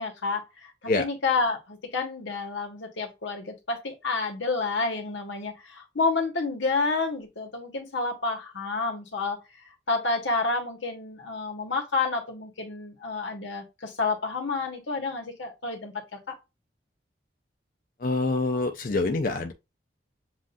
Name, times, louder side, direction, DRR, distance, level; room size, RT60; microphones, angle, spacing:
voice 1, 0.0-0.7 1.0-9.4 9.9-16.4, left 3 dB, 85° left, 1.4 m, -29 dB
voice 2, 18.0-19.5, left 3 dB, 45° left, 0.5 m, -26 dB
7.4 x 2.5 x 2.6 m
head